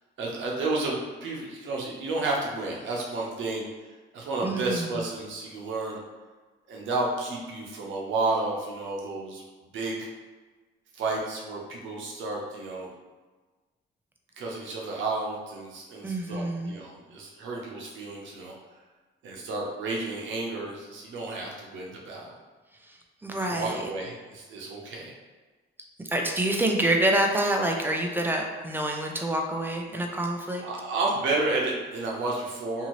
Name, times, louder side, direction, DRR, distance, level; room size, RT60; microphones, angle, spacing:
voice 1, 0.2-3.7 4.1-6.0 6.7-9.4 9.7-10.1 10.9-12.9 14.4-18.5 19.2-22.3 23.3-25.1 30.6-32.9, right 2 dB, 75° right, -2 dB, 0.7 m, -31 dB
voice 2, 4.4-4.9 16.0-16.8 23.2-23.8 26.1-30.6, right 1 dB, 10° right, 1 dB, 0.4 m, -27 dB
2.7 x 2.7 x 3.0 m, 1.3 s
cardioid pair, 90°, 20 cm